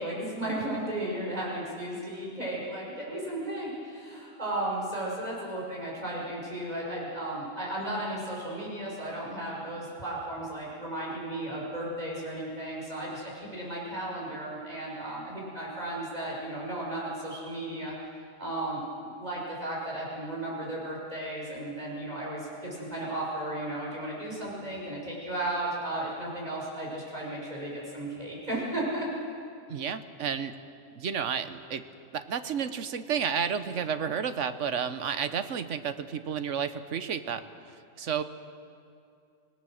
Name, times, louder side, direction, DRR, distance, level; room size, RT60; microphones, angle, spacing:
voice 1, 0.0-17.9 18.4-29.1, right 1 dB, 30° right, -5 dB, 6.4 m, -34 dB
voice 2, 29.7-30.5 30.9-31.8 32.1-37.4 38.0-38.2, right 7 dB, 70° right, 11 dB, 1.2 m, -31 dB
25.5 x 18.0 x 6.5 m, 2.5 s
omnidirectional pair, 1.3 m